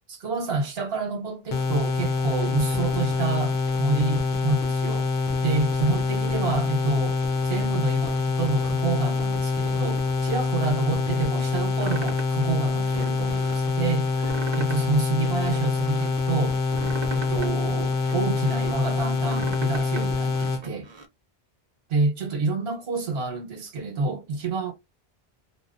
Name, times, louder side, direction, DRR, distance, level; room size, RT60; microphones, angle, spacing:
voice 1, 0.1-5.1 5.4-7.2 7.4-14.1 14.5-16.6 17.1-20.9 21.9-24.7, right 3 dB, 75° right, 1.1 m, -28 dB
sound 1, 1.5-20.6, left 4 dB, 60° left, 0.9 m, -25 dB
sound 2, 11.8-12.4 12.8-13.6 14.1-14.9 15.2-16.1 16.6-18.7 19.1-20.1 20.4-21.1, right 3 dB, 40° right, 0.4 m, -39 dB
2.8 x 2.2 x 2.4 m
omnidirectional pair, 1.1 m